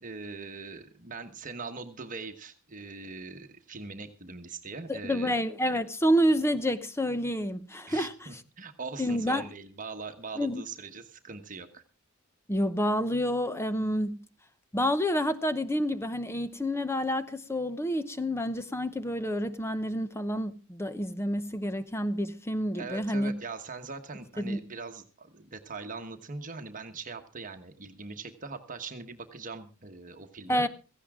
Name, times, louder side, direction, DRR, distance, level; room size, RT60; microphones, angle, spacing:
voice 1, 0.0-5.4 7.9-11.8 22.7-30.7, right 4 dB, 40° right, 1.3 m, -41 dB
voice 2, 4.9-8.1 9.0-9.5 10.4-10.6 12.5-14.2 14.7-23.3 24.4-24.6 30.5-30.7, equal, 10° left, 0.8 m, -28 dB
16.5 x 14.5 x 3.7 m
head